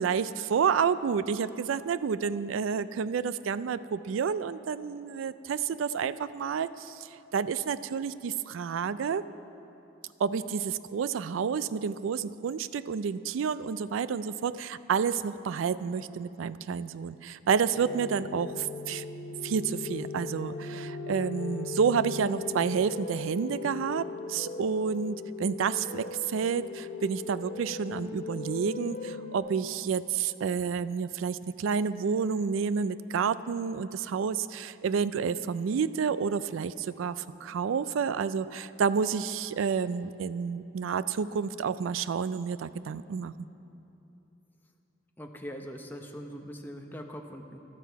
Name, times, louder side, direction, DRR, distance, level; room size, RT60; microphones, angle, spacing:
voice 1, 0.0-9.2 10.2-19.0 19.4-43.3, right 6 dB, 90° right, 15 dB, 0.4 m, -30 dB
sound 1, 17.7-29.4, left 4 dB, 70° left, 0.9 m, -39 dB
voice 2, 45.2-47.7, equal, 10° left, 3 dB, 0.8 m, -42 dB
13.0 x 12.5 x 4.6 m, 2.9 s
head